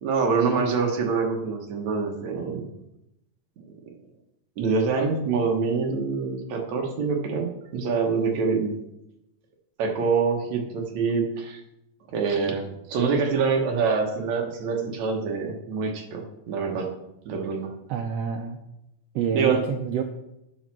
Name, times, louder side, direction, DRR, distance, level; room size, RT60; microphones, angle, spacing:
voice 1, 0.0-2.7 4.6-8.7 9.8-11.6 12.1-16.9 17.3-17.7 19.3-19.6, right 5 dB, 65° right, 2 dB, 2.6 m, -25 dB
voice 2, 17.9-18.6 19.1-20.0, right 7 dB, 85° right, 5 dB, 1.4 m, -27 dB
9.0 x 6.4 x 6.1 m, 0.87 s
omnidirectional pair, 3.7 m